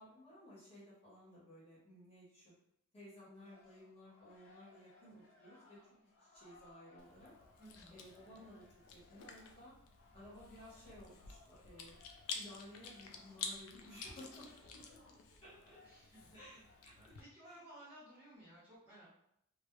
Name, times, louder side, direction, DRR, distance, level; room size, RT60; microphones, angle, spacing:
voice 1, 0.0-2.5 2.9-5.8 6.2-7.3 7.9-8.7 8.9-9.7 10.1-11.9 12.2-14.5 15.4-15.8 16.3-17.1 17.4-17.6, left 1 dB, 30° left, -9 dB, 1.0 m, -56 dB
sound 1, 3.3-16.8, left 2 dB, 60° left, 0.8 m, -66 dB
Chewing mastication, 7.0-17.2, left 5 dB, 85° left, 0.4 m, -51 dB
voice 2, 7.6-8.0 15.8-16.2 17.0-19.1, right 1 dB, 10° right, -11 dB, 0.9 m, -57 dB
2.2 x 2.1 x 3.0 m, 0.75 s
head